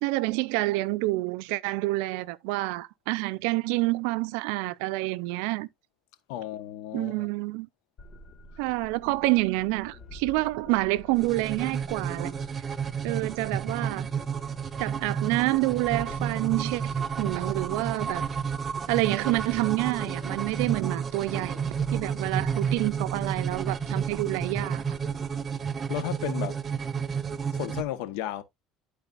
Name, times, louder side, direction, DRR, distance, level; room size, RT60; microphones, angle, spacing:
voice 1, 0.0-5.7 6.9-7.7 8.6-12.4 13.0-14.1 14.8-16.8 17.2-18.3 18.9-21.6 21.9-24.8, right 21 dB, 80° right, 0.4 m, -28 dB
voice 2, 6.3-7.3 25.9-26.6 27.5-28.4, left 13 dB, 85° left, 1.1 m, -33 dB
sound 1, 8.0-25.4, left 2 dB, 35° left, 1.2 m, -49 dB
sound 2, 11.2-27.8, right 6 dB, 25° right, 0.5 m, -31 dB
12.0 x 4.1 x 2.5 m
cardioid pair, 140°, 0 cm